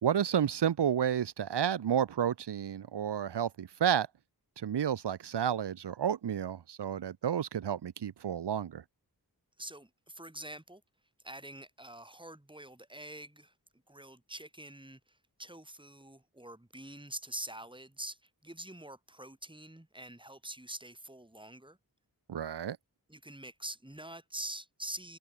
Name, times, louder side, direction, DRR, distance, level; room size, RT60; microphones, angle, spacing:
voice 1, 0.0-4.1 4.6-8.8 22.3-22.8, right 9 dB, 85° right, 0.7 m, -31 dB
voice 2, 9.6-10.8 11.2-13.5 13.9-21.8 23.1-25.2, right 1 dB, 10° right, 4.1 m, -45 dB
wide cardioid pair, 45°, 40 cm